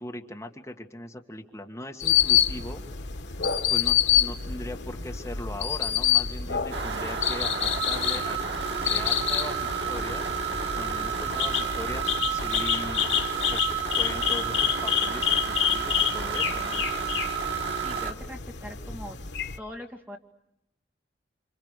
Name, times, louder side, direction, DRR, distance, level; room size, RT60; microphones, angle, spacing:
voice 1, 0.0-2.8 3.7-8.4 8.8-10.2 10.7-13.1 13.5-16.8, left 1 dB, 15° left, 3 dB, 1.8 m, -39 dB
sound 1, 2.0-19.6, left 10 dB, 85° left, 1.2 m, -28 dB
sound 2, 6.7-18.1, right 6 dB, 75° right, 2.7 m, -31 dB
voice 2, 17.8-19.2 19.6-20.2, equal, 10° right, 3 dB, 2.1 m, -41 dB
28.0 x 27.5 x 6.6 m, 0.88 s
head